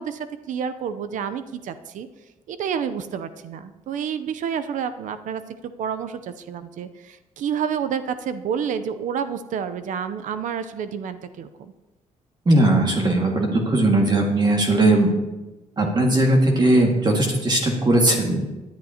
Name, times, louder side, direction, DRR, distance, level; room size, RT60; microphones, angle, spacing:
voice 1, 0.0-2.1 2.5-5.4 5.8-11.7, right 7 dB, 70° right, 11 dB, 0.7 m, -29 dB
voice 2, 12.5-15.1 15.8-18.5, right 1 dB, 30° right, 0 dB, 2.0 m, -18 dB
17.5 x 10.5 x 2.9 m, 1.1 s
cardioid pair, 95°, 14 cm